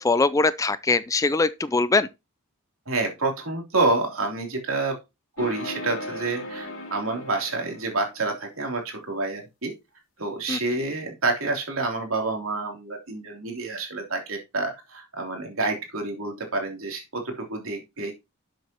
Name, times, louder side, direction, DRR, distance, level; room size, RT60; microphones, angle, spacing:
voice 1, 0.0-2.1 10.5-10.6, left 3 dB, 15° left, 0.4 m, -22 dB
voice 2, 2.9-5.0 5.4-9.7 10.2-18.1, right 3 dB, 70° right, 3.2 m, -28 dB
sound 1, 5.4-8.4, left 1 dB, 65° left, 3.0 m, -37 dB
11.5 x 7.7 x 2.9 m
head